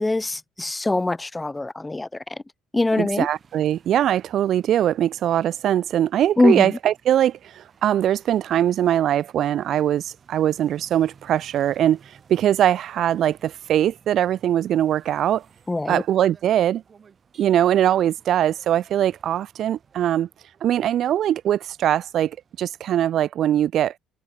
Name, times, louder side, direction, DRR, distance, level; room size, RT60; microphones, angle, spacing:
voice 1, 0.0-2.4 2.7-3.3 6.4-6.7 15.7-16.0, left 2 dB, 10° left, 0.5 m, -23 dB
voice 2, 2.9-15.4 15.9-16.8 17.4-20.3 20.6-23.9, right 11 dB, 55° right, 0.5 m, -21 dB
sound 1, 3.2-22.9, right 6 dB, 35° right, 8.0 m, -56 dB
cardioid pair, 125°, 0 cm